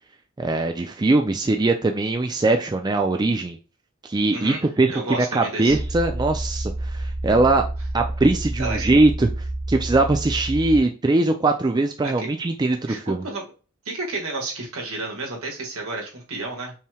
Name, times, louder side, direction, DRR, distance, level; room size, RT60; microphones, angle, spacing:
voice 1, 0.4-3.6 4.0-7.6 7.9-9.3 9.7-13.2, right 2 dB, 20° right, 4 dB, 0.4 m, -21 dB
voice 2, 4.9-5.8 8.6-8.9 12.0-12.3 12.9-13.4 13.8-16.7, right 2 dB, 70° right, 0 dB, 1.7 m, -31 dB
sound 1, 5.7-10.8, right 1 dB, 90° left, 2.0 m, -29 dB
5.5 x 3.2 x 2.3 m, 0.34 s
head